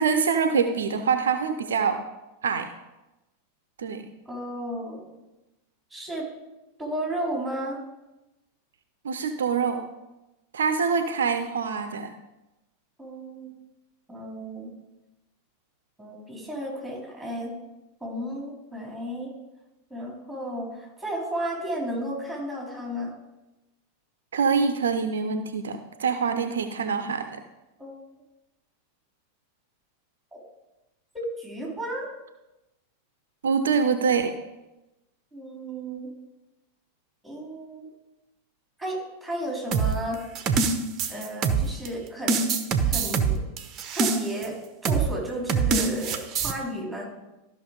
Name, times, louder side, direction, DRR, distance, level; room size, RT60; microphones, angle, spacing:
voice 1, 0.0-2.0 2.4-2.7 3.8-4.0 9.0-9.8 10.5-12.1 24.3-27.4 33.4-34.3, right 5 dB, 65° right, 8 dB, 0.7 m, -25 dB
voice 2, 4.3-5.1 5.9-6.3 6.8-7.8 13.0-13.5 14.1-14.7 16.0-17.5 18.0-19.3 19.9-23.1 27.8-28.0 30.3-30.4 31.4-32.1 35.3-36.1 37.2-37.9 38.8-40.2 41.1-42.4 42.8-43.4 43.9-44.5 44.8-47.1, right 1 dB, 5° right, -3 dB, 4.1 m, -33 dB
sound 1, 39.7-41.9 42.3-44.5 44.8-45.1 45.5-46.5, right 5 dB, 30° right, 1.0 m, -24 dB
13.5 x 6.0 x 5.1 m, 0.98 s
figure-of-eight pair, 90°, 0 cm